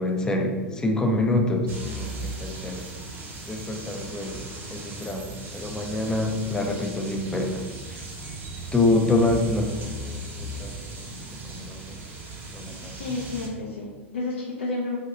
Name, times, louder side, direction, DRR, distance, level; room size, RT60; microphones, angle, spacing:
voice 1, 0.0-2.9 3.5-7.6 7.9-8.1 8.7-10.7 11.5-12.0 12.5-13.0, left 2 dB, 10° left, 3 dB, 0.4 m, -26 dB
sound 1, 1.7-13.5, right 2 dB, 35° right, 0.8 m, -38 dB
voice 2, 12.9-15.0, left 2 dB, 75° left, -5 dB, 0.5 m, -31 dB
2.7 x 2.3 x 3.4 m, 1.4 s
hypercardioid pair, 95°, 6 cm